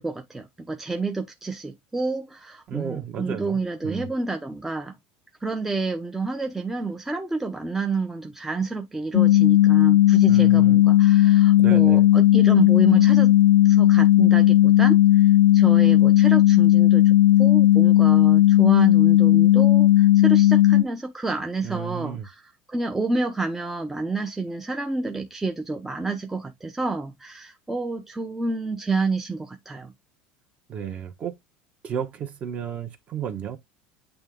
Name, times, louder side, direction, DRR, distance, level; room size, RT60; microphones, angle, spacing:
voice 1, 0.0-4.9 5.4-13.3 13.6-22.4 22.7-29.9, right 3 dB, 10° right, 0.8 m, -29 dB
voice 2, 2.7-4.1 10.3-10.8 11.6-12.1 21.6-22.3 30.7-31.4 31.8-33.6, right 9 dB, 35° right, 1.3 m, -33 dB
sound 1, 9.1-20.8, left 14 dB, 75° left, 0.5 m, -16 dB
8.7 x 3.1 x 3.7 m
supercardioid pair, 135°, 4 cm